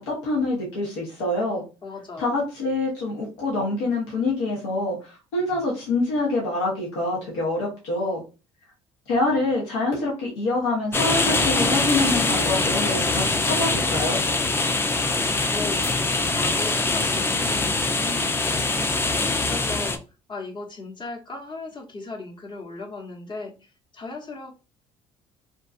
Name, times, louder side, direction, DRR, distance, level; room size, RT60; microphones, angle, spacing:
voice 1, 0.0-1.6 2.2-8.2 9.1-14.2, left 2 dB, 85° left, -3 dB, 0.9 m, -26 dB
voice 2, 1.8-2.3 15.5-19.2 19.4-20.0 20.3-24.5, left 3 dB, 35° left, 1 dB, 0.9 m, -37 dB
sound 1, 10.9-20.0, left 3 dB, 15° left, 0.4 m, -23 dB
2.6 x 2.3 x 2.4 m, 0.31 s
hypercardioid pair, 65°, 14 cm